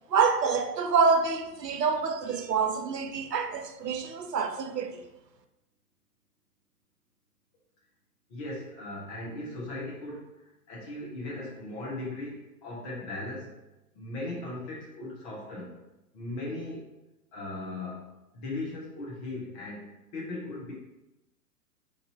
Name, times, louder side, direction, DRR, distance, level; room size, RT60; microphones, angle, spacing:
voice 1, 0.1-5.0, right 5 dB, 80° right, 0.6 m, -27 dB
voice 2, 8.3-10.3 10.7-13.5 13.9-15.8 16.1-16.8 17.3-20.7, left 2 dB, 25° left, 0.8 m, -38 dB
3.1 x 2.6 x 4.0 m
figure-of-eight pair, 115°, 48 cm